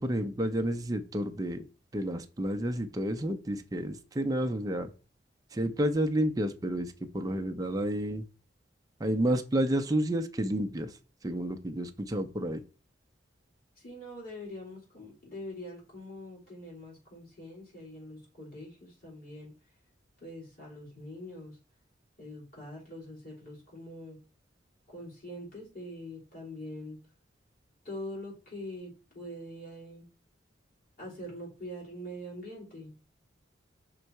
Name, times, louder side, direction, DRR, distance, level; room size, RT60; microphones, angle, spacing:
voice 1, 0.0-1.6 1.9-4.9 5.5-8.2 9.0-10.9 11.2-12.6, right 1 dB, 20° right, 6 dB, 0.5 m, -30 dB
voice 2, 13.8-19.5 20.2-21.6 22.2-24.2 24.9-27.0 27.8-30.1 31.0-32.9, left 1 dB, 50° left, -3 dB, 3.5 m, -43 dB
5.4 x 3.9 x 4.5 m, 0.33 s
head